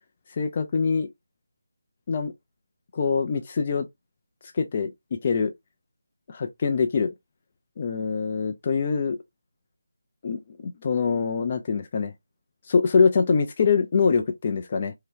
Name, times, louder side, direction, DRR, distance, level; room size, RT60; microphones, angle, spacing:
voice 1, 0.3-1.1 2.1-2.3 2.9-3.9 4.5-5.5 6.3-7.1 7.8-9.2 10.2-12.1 12.7-14.9, left 5 dB, 35° left, 0.4 m, -24 dB
2.7 x 2.2 x 3.3 m
figure-of-eight pair, 165°, 0 cm